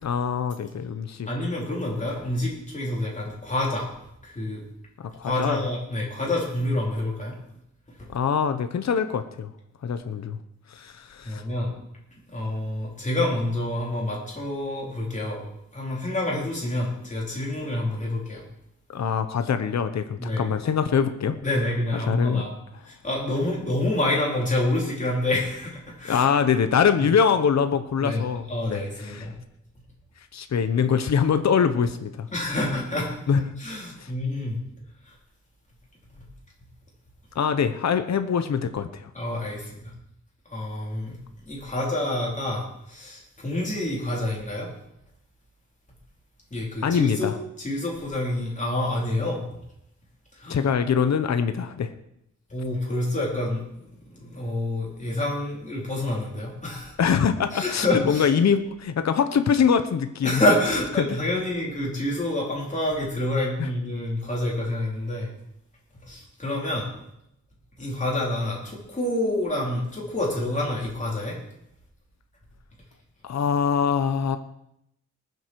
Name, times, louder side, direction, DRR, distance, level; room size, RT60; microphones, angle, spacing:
voice 1, 0.0-1.3 5.0-5.6 8.1-9.5 9.8-10.4 10.7-11.4 18.9-21.4 21.9-22.4 26.1-29.3 30.3-32.3 33.3-33.5 34.0-34.1 37.3-39.1 46.8-47.3 50.5-51.9 57.0-60.4 61.0-61.2 63.6-63.7 73.2-74.4, left 7 dB, 60° left, 9 dB, 0.9 m, -24 dB
voice 2, 1.3-3.9 4.2-4.6 5.2-7.3 11.2-11.7 12.3-15.5 15.7-18.4 20.2-20.5 21.4-22.5 22.9-26.2 28.0-29.3 32.3-33.1 33.6-34.6 39.1-39.9 40.5-41.2 41.5-44.7 46.5-47.3 47.6-49.4 50.4-50.6 52.5-53.6 54.2-56.9 57.5-58.3 60.2-65.3 66.1-66.9 67.8-71.4, left 1 dB, 25° left, -3 dB, 4.4 m, -27 dB
20.0 x 7.9 x 4.7 m, 0.78 s
wide cardioid pair, 130°, 31 cm